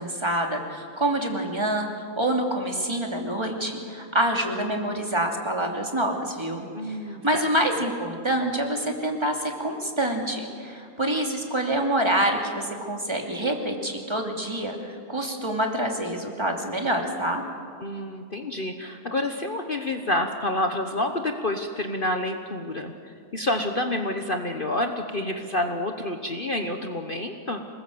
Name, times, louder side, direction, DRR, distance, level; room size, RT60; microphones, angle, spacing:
voice 1, 0.0-1.9 2.2-17.4, right 1 dB, 15° right, 2 dB, 2.8 m, -26 dB
voice 2, 6.7-7.4 17.8-27.6, left 1 dB, 35° left, 5 dB, 1.2 m, -28 dB
27.0 x 19.5 x 7.9 m, 2.2 s
omnidirectional pair, 1.7 m